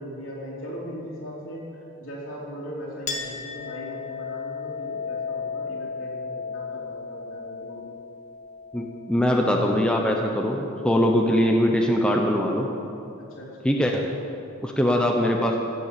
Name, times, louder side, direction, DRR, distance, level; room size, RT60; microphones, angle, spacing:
voice 1, 0.0-1.6 2.0-7.9 13.2-13.8, equal, 70° left, -5 dB, 3.7 m, -38 dB
Chink clink, 3.1-10.1, left 5 dB, 35° left, 1.4 m, -35 dB
voice 2, 8.7-12.7 13.6-14.1 14.6-15.6, equal, 5° left, 0 dB, 0.8 m, -22 dB
15.5 x 8.4 x 6.9 m, 2.7 s
head